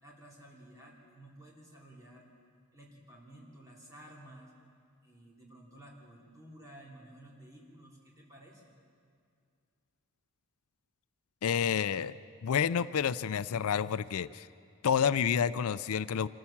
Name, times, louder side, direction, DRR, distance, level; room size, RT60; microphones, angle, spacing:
voice 1, 0.0-2.3 2.7-4.5 5.0-8.8, right 1 dB, 15° right, -3 dB, 3.0 m, -53 dB
voice 2, 11.4-12.2 12.4-14.5 14.8-16.3, left 7 dB, 80° left, 16 dB, 0.4 m, -29 dB
25.5 x 14.0 x 7.2 m, 2.2 s
head